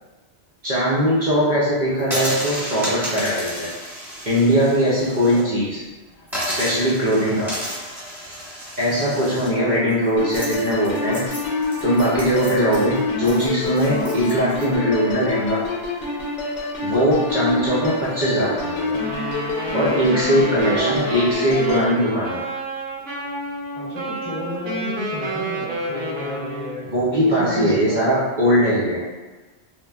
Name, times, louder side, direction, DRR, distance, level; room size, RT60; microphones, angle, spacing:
voice 1, 0.6-3.7 4.3-5.8 6.4-7.6 8.8-11.3 11.8-15.6 16.8-19.0 19.7-22.4 26.9-29.0, equal, 50° right, -8 dB, 0.6 m, -20 dB
sound 1, 2.0-5.4 5.7-5.8 6.3-14.6, equal, ahead, 1.1 m, -32 dB
voice 2, 5.1-5.5 7.2-7.5 8.9-9.2 17.1-17.4 20.3-21.1 23.8-26.9 27.2-28.1, equal, 30° left, -10 dB, 0.7 m, -32 dB
sound 2, 10.2-21.9, left 2 dB, 80° left, 1.0 m, -27 dB
Wind instrument woodwind instrument, 18.9-26.9, right 1 dB, 90° right, 1.0 m, -29 dB
3.2 x 2.1 x 2.3 m, 1.2 s
omnidirectional pair, 1.2 m